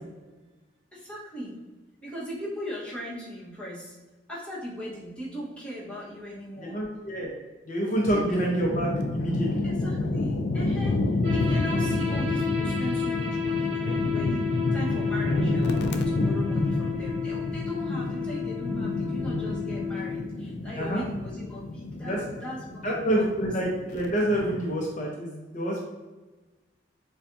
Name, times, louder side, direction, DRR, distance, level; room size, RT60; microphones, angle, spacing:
voice 1, 0.9-1.6 2.0-4.0 4.3-6.8 8.1-8.4 9.6-11.0 11.3-23.4, equal, 5° left, -7 dB, 1.2 m, -39 dB
voice 2, 6.6-7.3 7.6-9.7 20.7-21.0 22.0-22.2 22.8-25.8, right 1 dB, 45° left, -2 dB, 0.8 m, -27 dB
sound 1, 8.1-24.7, left 2 dB, 65° left, 0.4 m, -29 dB
sound 2, 11.2-20.2, left 6 dB, 65° right, 1.0 m, -32 dB
6.8 x 2.4 x 2.6 m, 1.2 s
head